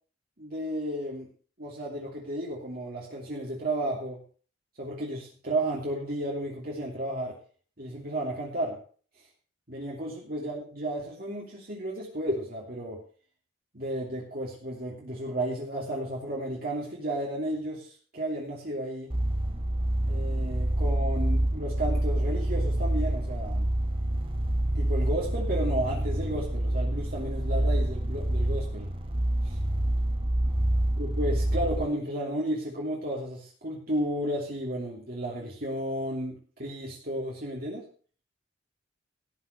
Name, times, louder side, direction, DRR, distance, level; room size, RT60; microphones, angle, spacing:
voice 1, 0.4-1.3 1.6-4.2 4.8-7.4 7.8-8.8 9.7-13.0 13.7-19.1 20.0-23.7 24.7-28.9 29.4-29.6 31.0-37.8, right 1 dB, 50° right, -3 dB, 3.0 m, -33 dB
sound 1, 19.1-31.8, right 1 dB, 30° right, 1.5 m, -27 dB
17.5 x 6.0 x 6.6 m, 0.42 s
head